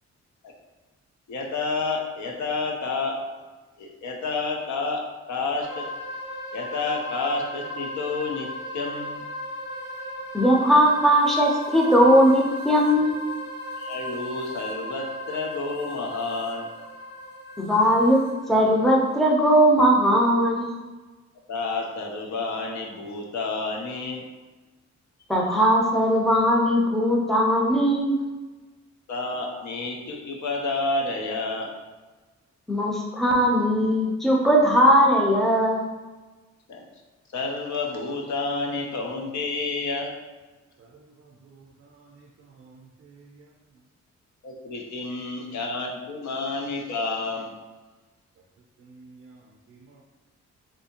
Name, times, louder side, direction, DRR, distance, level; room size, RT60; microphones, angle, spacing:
voice 1, 1.3-3.2 3.8-5.0 5.3-5.8 6.5-8.5 8.7-9.2 13.8-16.7 21.5-24.2 29.1-31.7 36.7-36.8 37.3-40.1 44.4-47.5, left 3 dB, 75° left, 1 dB, 0.6 m, -29 dB
sound 1, 5.6-19.2, left 1 dB, 40° left, 1.0 m, -37 dB
voice 2, 10.3-13.3 17.6-20.7 25.3-28.2 32.7-35.8, equal, ahead, -2 dB, 0.5 m, -19 dB
voice 3, 40.8-43.5 48.8-50.0, right 4 dB, 55° right, -1 dB, 0.5 m, -52 dB
3.3 x 2.7 x 2.8 m, 1.3 s
wide cardioid pair, 120°, 29 cm